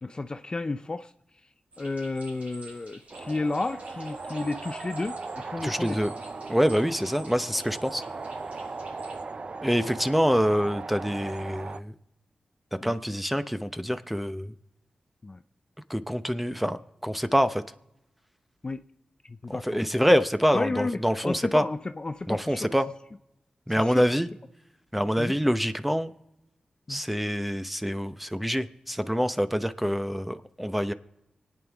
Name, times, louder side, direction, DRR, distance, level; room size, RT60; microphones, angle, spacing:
voice 1, 0.0-1.1 1.8-6.0 9.8-10.0 12.8-13.0 15.2-15.4 18.6-18.8 19.3-19.8 20.4-22.7 23.7-24.1 25.2-25.4 26.9-27.0, left 3 dB, 35° left, 0.5 m, -32 dB
sound 1, 1.7-9.2, right 2 dB, 70° right, 3.7 m, -50 dB
sound 2, 3.1-11.8, right 3 dB, 50° right, 0.5 m, -38 dB
voice 2, 5.6-6.1 6.5-8.0 9.6-11.9 12.8-14.5 15.9-17.6 19.5-21.6 22.3-22.9 23.7-24.3 24.9-26.1 26.9-30.9, equal, 5° right, 0.7 m, -26 dB
25.0 x 8.9 x 3.5 m
cardioid pair, 55°, 3 cm